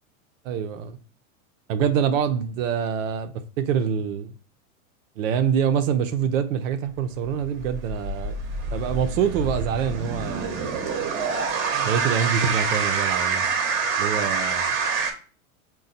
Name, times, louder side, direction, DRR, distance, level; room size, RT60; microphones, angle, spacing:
voice 1, 0.4-1.0 1.7-4.3 5.2-8.4 8.7-10.7 11.7-13.5 14.0-14.8, right 7 dB, 60° right, 0.6 m, -25 dB
sound 1, 7.2-15.1, right 5 dB, 30° right, 0.8 m, -26 dB
4.0 x 2.2 x 4.0 m
hypercardioid pair, 110°, 44 cm